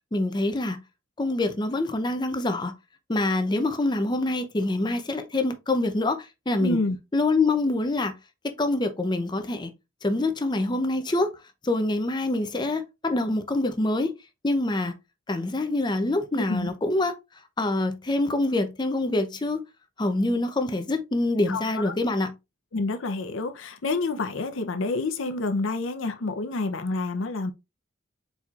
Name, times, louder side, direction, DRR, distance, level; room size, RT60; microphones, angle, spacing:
voice 1, 0.1-0.8 1.2-2.7 3.1-6.8 7.1-8.1 8.4-9.7 10.0-11.3 11.6-14.1 14.4-14.9 15.3-17.1 17.6-19.6 20.0-22.3, left 2 dB, 20° left, 0.5 m, -25 dB
voice 2, 6.6-7.0 16.3-16.7 21.5-21.9 22.7-27.5, left 3 dB, 75° left, 0.7 m, -28 dB
4.4 x 4.1 x 2.4 m
head